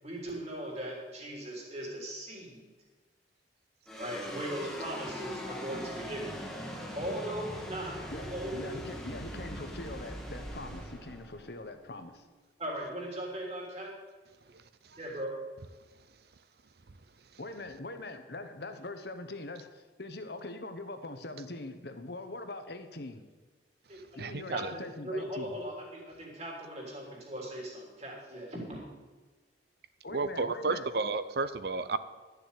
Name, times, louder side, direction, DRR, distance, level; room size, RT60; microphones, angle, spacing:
voice 1, 0.0-2.7 3.9-6.2 6.9-8.7 12.6-13.9 15.0-15.3 23.9-24.0 24.5-28.9, right 1 dB, 35° right, -2 dB, 3.5 m, -39 dB
sound 1, 3.9-12.4, equal, ahead, 1.4 m, -41 dB
voice 2, 8.1-12.3 17.4-23.2 24.2-25.6 30.0-30.9, left 2 dB, 60° left, 8 dB, 1.1 m, -42 dB
voice 3, 24.2-24.7 30.1-32.0, right 4 dB, 60° right, 13 dB, 0.7 m, -32 dB
12.0 x 6.9 x 8.2 m, 1.3 s
head